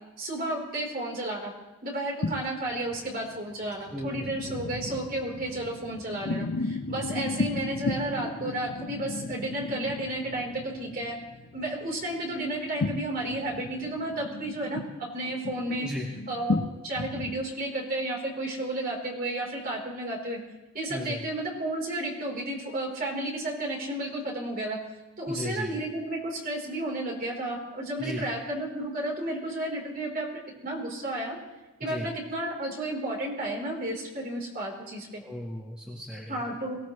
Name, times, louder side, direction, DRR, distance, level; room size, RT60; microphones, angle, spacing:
voice 1, 0.2-1.5 1.8-11.2 11.5-14.8 15.1-15.9 16.3-20.4 20.7-24.8 25.2-30.3 30.6-31.4 31.8-35.2 36.3-36.8, right 1 dB, 40° right, -2 dB, 4.1 m, -32 dB
sound 1, 2.2-17.3, left 2 dB, 70° left, 1.0 m, -35 dB
voice 2, 3.9-4.2 15.8-16.1 20.9-21.2 25.3-25.8 28.0-28.2 31.8-32.1 35.2-36.4, left 1 dB, 5° right, -3 dB, 1.6 m, -35 dB
23.0 x 16.5 x 3.3 m, 1.1 s
head